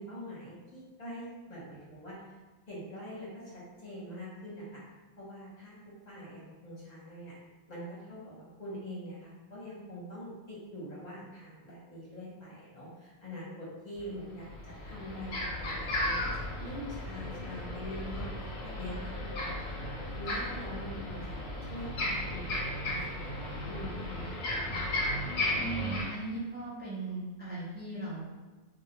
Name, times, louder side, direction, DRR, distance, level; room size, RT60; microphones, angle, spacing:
voice 1, 0.0-2.4 2.7-4.8 5.2-5.8 6.1-7.3 7.7-16.2 16.5-19.7 20.0-21.2 21.7-24.4, equal, 40° left, -8 dB, 0.8 m, -44 dB
sound 1, 14.0-14.1 14.4-26.0, left 1 dB, 70° left, 0.9 m, -35 dB
voice 2, 25.6-28.3, right 2 dB, 15° right, -9 dB, 0.3 m, -38 dB
2.2 x 2.1 x 2.8 m, 1.2 s
omnidirectional pair, 1.2 m